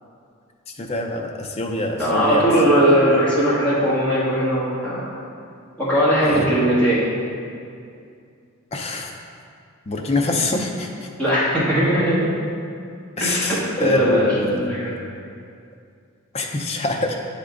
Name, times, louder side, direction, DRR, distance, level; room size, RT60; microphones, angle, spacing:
voice 1, 0.8-2.4 6.2-6.5 8.7-9.1 9.9-10.9 13.2-14.7 16.3-17.2, left 2 dB, 30° left, 2 dB, 0.4 m, -24 dB
voice 2, 2.0-5.0 5.8-7.1 11.2-12.3 13.2-15.0, equal, 5° left, -10 dB, 1.5 m, -19 dB
7.8 x 3.5 x 3.7 m, 2.4 s
head